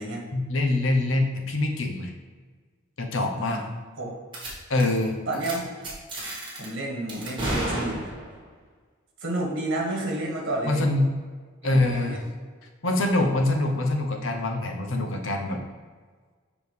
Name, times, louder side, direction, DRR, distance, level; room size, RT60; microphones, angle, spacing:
voice 1, 0.3-2.1 3.0-3.6 4.7-5.1 10.7-11.1 11.6-12.2 12.8-15.6, left 2 dB, 80° left, 3 dB, 0.8 m, -24 dB
voice 2, 3.4-4.1 5.3-6.0 6.6-8.1 9.2-10.8 11.6-12.2, right 1 dB, 70° right, -1 dB, 1.4 m, -31 dB
sound 1, 4.3-4.5 4.8-5.0 5.3-5.5 5.8-6.7 7.1-8.4, right 1 dB, 25° right, 1.3 m, -31 dB
6.9 x 4.9 x 3.3 m, 1.5 s
head